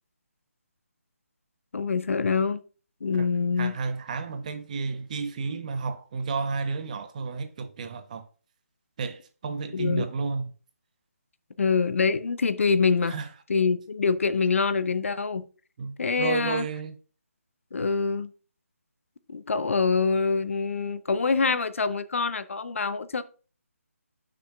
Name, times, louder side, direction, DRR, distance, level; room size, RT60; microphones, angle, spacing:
voice 1, 1.7-2.6 3.0-3.8 9.7-10.1 11.6-13.2 13.5-15.5 16.0-16.7 17.7-18.3 19.3-23.2, left 4 dB, 60° left, 0.6 m, -25 dB
voice 2, 3.6-8.3 9.0-10.5 13.1-13.3 15.8-17.0, right 4 dB, 30° right, 0.7 m, -32 dB
11.0 x 6.1 x 2.3 m
figure-of-eight pair, 160°, 8 cm